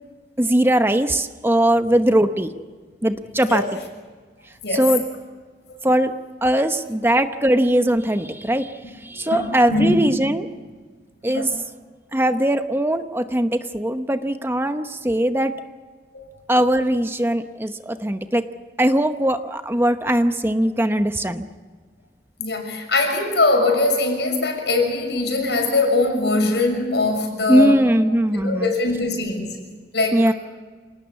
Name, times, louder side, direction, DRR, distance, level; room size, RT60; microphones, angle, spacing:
voice 1, 0.4-2.5 3.0-3.6 4.7-5.0 5.8-6.1 6.4-10.5 11.2-11.5 12.1-15.5 16.5-18.4 18.8-21.5 27.5-28.7 30.1-30.3, right 1 dB, 15° right, 8 dB, 0.9 m, -20 dB
voice 2, 9.2-10.1 11.3-11.5 16.1-16.3 22.4-27.9 28.3-29.6 29.9-30.3, left 2 dB, 70° left, 4 dB, 6.5 m, -22 dB
28.0 x 19.0 x 8.4 m, 1.4 s
head